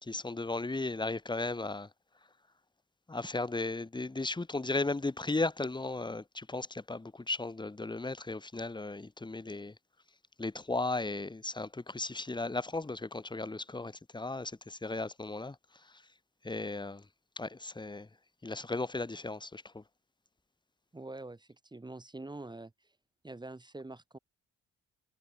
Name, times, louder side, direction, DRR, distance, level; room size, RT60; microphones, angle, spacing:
voice 1, 0.0-1.9 3.1-9.7 10.4-15.6 15.8-16.0 16.4-17.1 17.4-18.1 18.4-19.8, left 2 dB, 15° left, 1.8 m, -36 dB
voice 2, 20.9-22.7 23.2-24.2, right 2 dB, 15° right, 2.0 m, -45 dB
cardioid pair, 90°, 30 cm